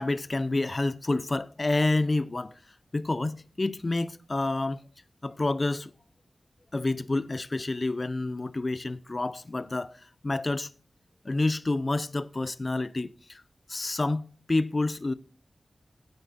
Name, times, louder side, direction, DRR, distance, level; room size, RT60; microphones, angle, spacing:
voice 1, 0.0-2.5 2.9-4.8 5.2-5.9 6.7-9.9 10.2-10.7 11.2-13.4 13.7-15.1, left 2 dB, 35° left, 0.5 m, -28 dB
9.5 x 9.0 x 4.1 m
wide cardioid pair, 90°, 0 cm